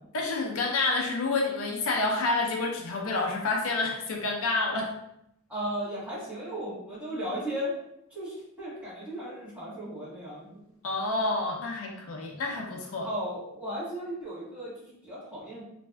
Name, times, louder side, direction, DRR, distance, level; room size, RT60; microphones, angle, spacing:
voice 1, 0.1-4.9 10.8-13.1, left 3 dB, 65° left, 0 dB, 0.5 m, -28 dB
voice 2, 5.5-7.7 8.1-10.6 13.0-15.6, equal, 10° right, -11 dB, 1.5 m, -36 dB
3.2 x 2.5 x 2.2 m, 0.77 s
head